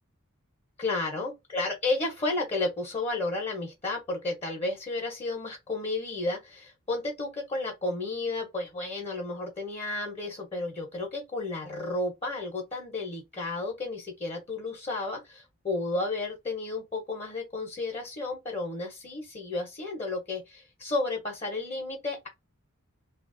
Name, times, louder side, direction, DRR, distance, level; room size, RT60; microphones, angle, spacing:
voice 1, 0.8-22.3, left 2 dB, 30° left, 1.1 m, -32 dB
3.1 x 2.6 x 2.6 m
head